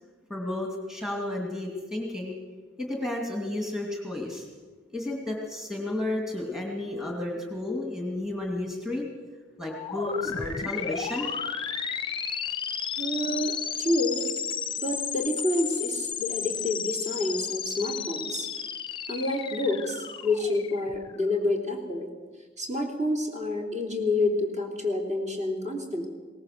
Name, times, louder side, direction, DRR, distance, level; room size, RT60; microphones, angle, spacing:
voice 1, 0.3-2.3 2.8-4.5 4.9-9.1 9.6-11.3, left 2 dB, 5° right, 0 dB, 2.5 m, -32 dB
sound 1, 9.7-21.4, left 7 dB, 25° left, 0.8 m, -33 dB
voice 2, 13.0-14.2 14.8-18.5 19.1-22.1 22.6-26.1, left 2 dB, 40° right, 1 dB, 3.3 m, -28 dB
21.5 x 18.5 x 6.7 m, 1.4 s
head